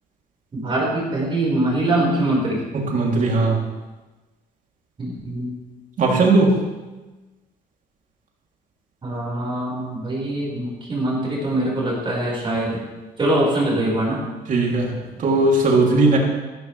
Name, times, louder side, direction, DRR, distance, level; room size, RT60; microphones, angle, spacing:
voice 1, 0.5-2.6 5.0-5.5 9.0-12.8 13.2-14.2, right 1 dB, 30° right, -4 dB, 5.1 m, -23 dB
voice 2, 2.7-3.6 6.0-6.6 14.5-14.9 15.2-16.2, right 3 dB, 50° right, -1 dB, 3.2 m, -18 dB
14.5 x 13.5 x 3.4 m, 1.2 s
cardioid pair, 110°, 17 cm